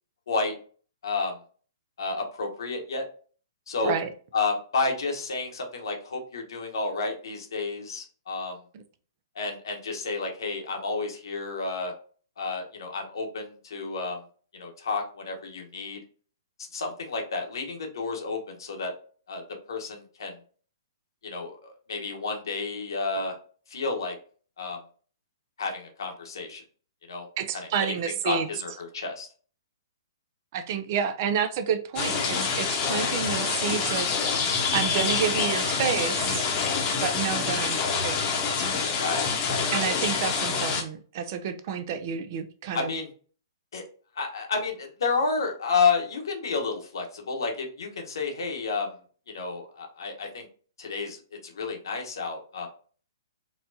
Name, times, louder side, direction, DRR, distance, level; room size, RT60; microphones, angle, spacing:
voice 1, 1.0-1.3 2.0-3.0 3.7-3.9 4.3-8.6 9.3-11.9 12.4-14.2 14.5-16.0 16.7-18.9 19.3-19.4 19.7-20.3 21.2-23.4 23.7-24.2 24.6-24.8 25.6-26.6 27.1-27.3 27.9-28.0 28.2-29.3 39.0-39.6 42.7-43.1 43.7-43.8 44.2-49.0 49.3-50.5 50.8-52.7, left 4 dB, 75° left, 1.1 m, -30 dB
voice 2, 27.4-28.5 30.5-36.5 37.0-38.2 39.7-42.9, right 7 dB, 45° right, 0.5 m, -30 dB
sound 1, 32.0-40.8, left 5 dB, 30° left, 0.8 m, -26 dB
4.1 x 2.3 x 2.7 m
hypercardioid pair, 135°, 2 cm